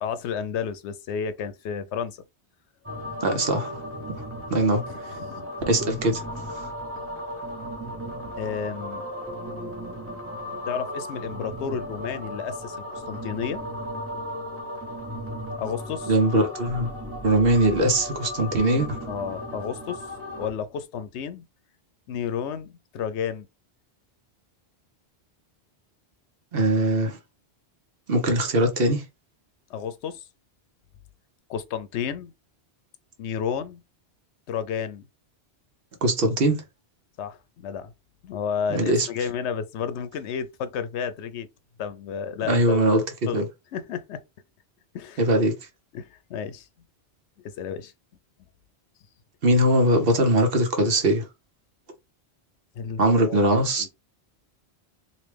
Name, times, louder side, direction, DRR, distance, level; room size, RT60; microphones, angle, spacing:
voice 1, 0.0-2.2 4.9-5.5 8.4-9.1 10.7-13.6 15.6-16.1 19.1-20.1 20.4-21.4 22.1-23.5 29.7-30.3 31.5-32.3 33.2-33.8 34.5-35.1 37.2-37.9 38.2-41.5 41.8-43.4 43.7-44.2 44.9-45.3 45.9-46.7 47.4-47.9 52.8-53.4 53.8-53.9, left 7 dB, 90° left, 0.9 m, -32 dB
sound 1, 2.8-20.5, equal, 15° right, 0.9 m, -35 dB
voice 2, 3.2-3.7 4.5-4.8 5.7-6.2 6.5-6.7 16.1-16.9 17.2-19.0 26.5-27.2 28.1-29.0 36.0-36.6 38.7-39.1 42.5-43.0 43.3-43.4 45.2-45.5 49.4-51.2 53.0-53.9, right 1 dB, 60° right, 1.1 m, -21 dB
3.1 x 2.8 x 3.3 m
omnidirectional pair, 1.1 m